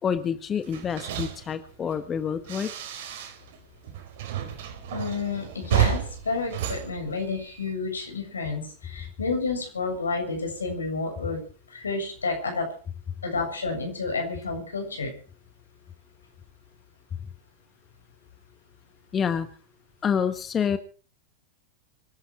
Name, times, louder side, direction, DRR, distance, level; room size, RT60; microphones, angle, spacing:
voice 1, 0.0-2.7 19.1-19.5 20.0-20.8, left 7 dB, 25° left, 10 dB, 1.4 m, -27 dB
sound 1, 0.6-3.6 3.8-7.7, right 10 dB, 60° right, 4.3 m, -31 dB
voice 2, 4.9-11.4 11.7-12.7 13.2-15.2, left 4 dB, 85° left, 4 dB, 7.1 m, -30 dB
25.0 x 12.0 x 4.6 m, 0.39 s
figure-of-eight pair, 95°, 0 cm